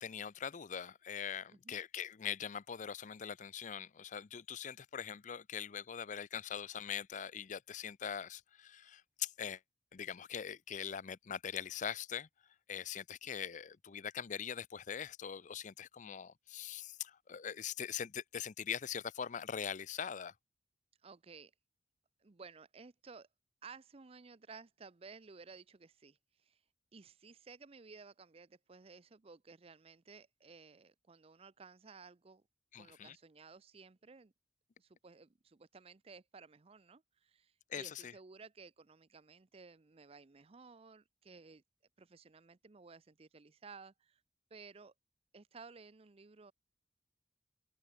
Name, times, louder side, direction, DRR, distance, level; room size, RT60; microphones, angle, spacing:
voice 1, 0.0-9.6 9.9-12.3 12.7-20.3 32.7-33.2 37.7-38.1, left 8 dB, 45° left, 0.5 m, -42 dB
voice 2, 21.0-21.5 22.2-23.3 23.6-26.6 26.9-32.4 32.8-34.3 34.8-41.6 42.0-44.2 44.5-44.9 45.3-46.5, right 4 dB, 35° right, 0.6 m, -56 dB
head